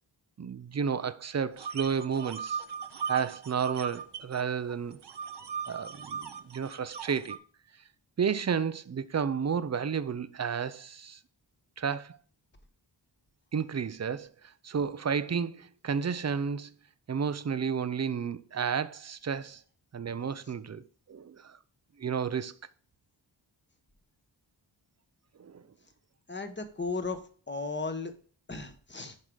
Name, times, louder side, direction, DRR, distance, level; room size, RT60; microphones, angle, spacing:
voice 1, 0.4-2.6 3.1-5.0 5.7-7.4 8.2-11.2 11.8-12.2 13.5-14.3 14.6-16.7 17.1-19.6 19.9-20.8 21.1-21.6 22.0-22.5 25.4-25.6, right 6 dB, 35° right, 0.5 m, -31 dB
sound 1, 1.6-4.4 4.7-7.4, right 6 dB, 65° right, 0.8 m, -38 dB
voice 2, 26.3-27.2 27.5-28.1 28.5-29.2, left 3 dB, 25° left, 1.1 m, -35 dB
10.5 x 4.9 x 3.8 m
wide cardioid pair, 135°, 44 cm